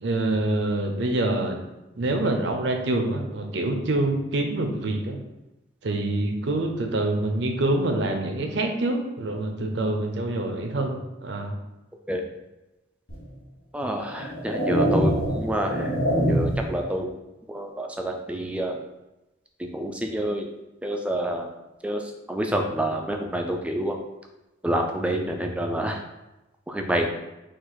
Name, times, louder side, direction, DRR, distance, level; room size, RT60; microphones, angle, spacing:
voice 1, 0.0-1.6 2.0-5.2 5.8-11.6, right 2 dB, 65° right, 3 dB, 0.6 m, -26 dB
sound 1, 13.1-13.2 14.0-16.7, equal, 90° left, 1.2 m, -24 dB
voice 2, 13.7-16.0 16.3-17.1 17.5-18.8 19.6-20.5 20.8-21.5 21.8-24.0 24.6-26.0 26.7-27.1, right 1 dB, 5° right, 3 dB, 0.3 m, -28 dB
4.6 x 2.4 x 4.0 m, 0.99 s
head